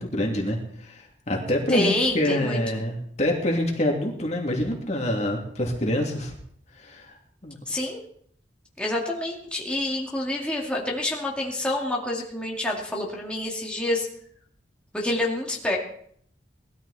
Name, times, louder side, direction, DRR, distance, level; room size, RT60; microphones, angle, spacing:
voice 1, 0.0-6.4 6.8-7.1 7.4-7.6, left 1 dB, 40° left, 1 dB, 2.7 m, -26 dB
voice 2, 1.7-2.8 7.7-8.0 8.8-14.1 14.9-15.8, left 1 dB, 5° left, -3 dB, 2.4 m, -27 dB
20.0 x 13.5 x 4.2 m, 0.64 s
head